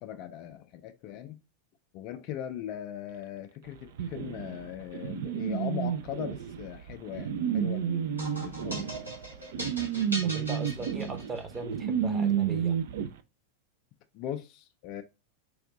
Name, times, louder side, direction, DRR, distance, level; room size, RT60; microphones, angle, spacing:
voice 1, 0.0-1.4 1.9-8.9 14.1-15.0, left 10 dB, 40° left, 0.4 m, -39 dB
sound 1, 4.0-13.1, right 8 dB, 55° right, 0.5 m, -31 dB
sound 2, 8.2-11.6, equal, 90° right, 2.4 m, -39 dB
voice 2, 10.2-12.8, right 3 dB, 15° right, 0.9 m, -39 dB
4.8 x 2.5 x 3.5 m
figure-of-eight pair, 90°, 0 cm